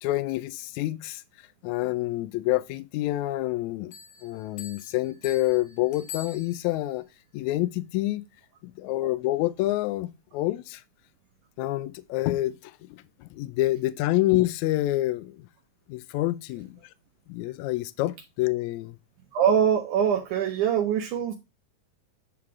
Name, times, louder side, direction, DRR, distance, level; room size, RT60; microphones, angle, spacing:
voice 1, 0.0-1.2 1.6-3.9 4.2-7.0 7.3-8.2 8.6-10.8 11.6-15.4 15.9-16.7 17.3-19.0, left 16 dB, 80° left, 1.7 m, -27 dB
Bell, 3.9-7.0, left 7 dB, 60° left, 2.0 m, -45 dB
voice 2, 19.3-21.3, right 8 dB, 75° right, 2.3 m, -23 dB
9.6 x 3.7 x 4.7 m
omnidirectional pair, 3.7 m